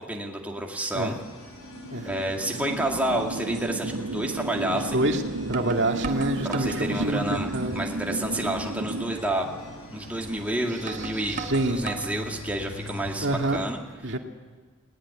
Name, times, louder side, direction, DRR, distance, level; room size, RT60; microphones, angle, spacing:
voice 1, 0.1-1.2 2.0-5.1 6.4-9.5 9.9-11.4 11.7-14.2, right 1 dB, 5° right, 0 dB, 2.2 m, -29 dB
sound 1, 1.1-13.6, left 1 dB, 75° left, 7.9 m, -41 dB
sound 2, 1.6-9.2, right 2 dB, 75° right, 0.7 m, -33 dB
sound 3, 3.5-3.7 4.9-5.0 5.5-6.9 7.4-7.9 8.3-8.4 8.9-9.0 10.2-10.3 10.9-12.2 12.7-13.2, right 4 dB, 35° right, 1.5 m, -38 dB
voice 2, 5.5-7.7 11.3-11.8 13.2-13.6 14.0-14.2, right 1 dB, 55° right, 4 dB, 2.2 m, -26 dB
20.0 x 19.0 x 9.8 m, 1.4 s
head